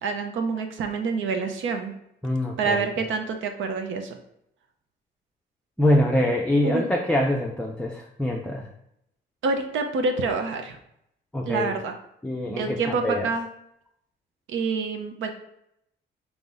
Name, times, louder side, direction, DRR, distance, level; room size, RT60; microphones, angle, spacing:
voice 1, 0.0-1.9 2.6-4.2 6.6-6.9 9.4-10.8 11.5-11.9 12.5-13.5 14.5-15.3, right 4 dB, 75° right, 5 dB, 0.7 m, -27 dB
voice 2, 2.2-2.8 5.8-8.7 11.3-11.8 12.2-13.3, left 1 dB, 5° left, 0 dB, 0.4 m, -24 dB
3.9 x 3.0 x 3.8 m, 0.78 s
cardioid pair, 90°, 20 cm